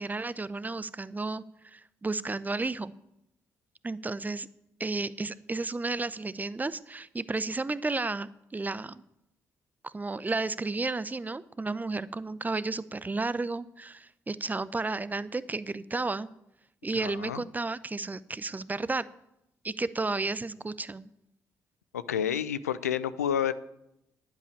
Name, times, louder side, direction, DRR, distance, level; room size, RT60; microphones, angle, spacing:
voice 1, 0.0-2.9 3.8-4.5 4.8-9.0 9.8-16.3 16.8-19.1 19.6-21.1, right 3 dB, 20° right, 17 dB, 0.7 m, -32 dB
voice 2, 16.9-17.4 21.9-23.5, left 9 dB, 80° left, 15 dB, 0.5 m, -30 dB
11.0 x 9.8 x 8.6 m, 0.83 s
figure-of-eight pair, 40°, 8 cm